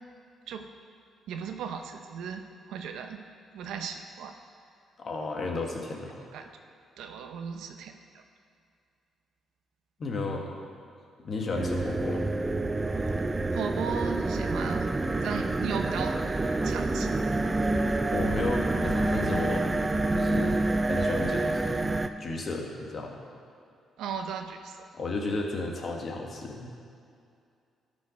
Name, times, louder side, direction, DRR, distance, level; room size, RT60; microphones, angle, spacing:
voice 1, 1.3-3.2 3.5-4.3 6.3-6.5 7.0-8.2 13.5-14.9 15.2-16.2 16.6-17.2 24.0-24.8, right 7 dB, 85° right, 6 dB, 0.7 m, -36 dB
voice 2, 5.0-6.2 10.0-10.5 11.2-12.2 18.1-19.8 20.1-21.9 22.2-23.2 24.9-26.7, left 3 dB, 45° left, 1 dB, 1.5 m, -33 dB
sound 1, 11.5-22.1, right 2 dB, 20° right, 0.4 m, -27 dB
12.5 x 5.3 x 5.3 m, 2.4 s
cardioid pair, 90°, 0 cm